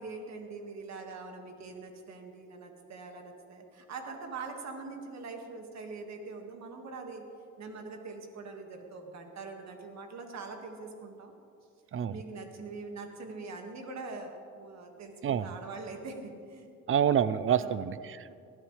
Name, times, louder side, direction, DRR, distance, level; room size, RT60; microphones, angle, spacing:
voice 1, 0.0-7.2 7.6-11.3 12.1-16.7 17.6-17.9 18.3-18.4, right 3 dB, 60° right, 3 dB, 1.9 m, -43 dB
voice 2, 16.9-18.3, right 8 dB, 45° right, 16 dB, 0.6 m, -27 dB
19.5 x 12.0 x 3.3 m, 2.3 s
cardioid pair, 90°, 30 cm